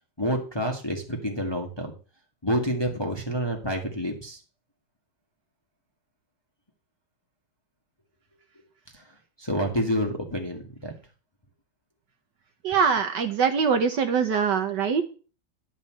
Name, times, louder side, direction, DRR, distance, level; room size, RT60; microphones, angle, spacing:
voice 1, 0.2-1.9 2.4-4.4 8.9-9.0 9.4-10.9, equal, 15° left, 2 dB, 1.3 m, -28 dB
voice 2, 12.6-15.0, right 6 dB, 65° right, 7 dB, 1.4 m, -23 dB
11.0 x 4.2 x 7.4 m, 0.36 s
omnidirectional pair, 2.3 m